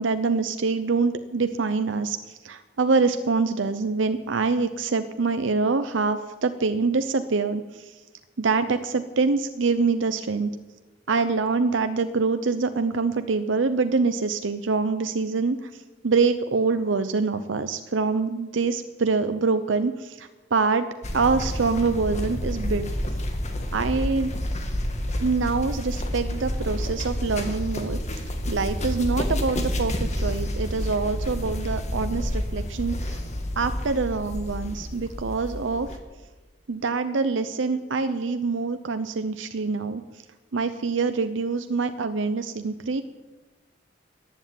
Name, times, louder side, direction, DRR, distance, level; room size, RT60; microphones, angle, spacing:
voice 1, 0.0-7.6 8.4-10.5 11.1-15.7 16.0-20.9 21.1-22.9 23.7-24.3 25.2-28.0 28.5-33.2 33.6-35.9 36.7-40.0 40.5-43.0, right 4 dB, 70° right, 10 dB, 0.7 m, -25 dB
sound 1, 21.0-36.0, left 1 dB, 40° left, 1.8 m, -29 dB
14.5 x 8.2 x 9.1 m, 1.2 s
head